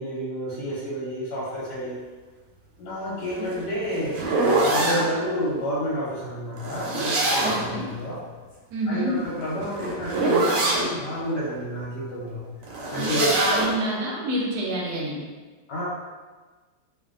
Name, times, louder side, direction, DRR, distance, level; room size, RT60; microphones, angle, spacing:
voice 1, 0.0-2.0 2.8-8.2 8.9-12.4 12.9-13.4 15.7-15.9, equal, 85° left, -9 dB, 1.4 m, -30 dB
sound 1, 3.3-5.1 6.6-7.7 9.2-10.9 12.6-13.7, right 2 dB, 90° right, 1.3 m, -24 dB
voice 2, 3.4-3.7 7.4-7.9 8.7-9.1 12.9-15.2, right 1 dB, 75° right, -3 dB, 1.2 m, -28 dB
2.8 x 2.6 x 2.4 m, 1.3 s
omnidirectional pair, 1.8 m